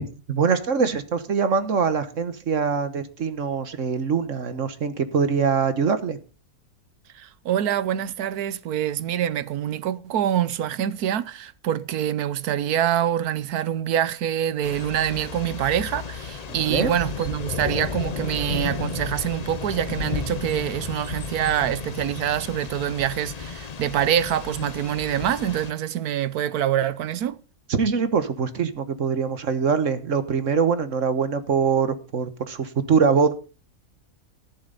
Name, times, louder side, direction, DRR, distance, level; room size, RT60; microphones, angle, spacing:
voice 1, 0.0-6.2 16.7-16.9 27.7-33.3, right 5 dB, 60° right, 1.5 m, -23 dB
voice 2, 7.1-27.4, right 10 dB, 90° right, 1.3 m, -25 dB
Thunder / Rain, 14.6-25.7, left 5 dB, 40° left, 0.6 m, -33 dB
13.5 x 11.0 x 4.0 m
omnidirectional pair, 1.6 m